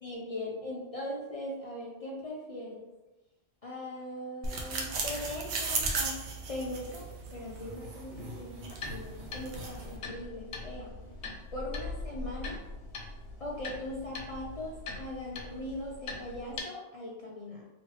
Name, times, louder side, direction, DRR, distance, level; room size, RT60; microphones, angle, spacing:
voice 1, 0.0-2.8 3.6-6.2 6.5-10.9 11.5-12.6 13.4-17.6, left 1 dB, 55° left, -3 dB, 0.4 m, -40 dB
sound 1, 4.4-10.0, right 3 dB, 75° right, 0.9 m, -36 dB
sound 2, 8.7-16.6, left 3 dB, 80° left, 0.9 m, -42 dB
3.1 x 2.8 x 3.0 m, 1.1 s
omnidirectional pair, 1.1 m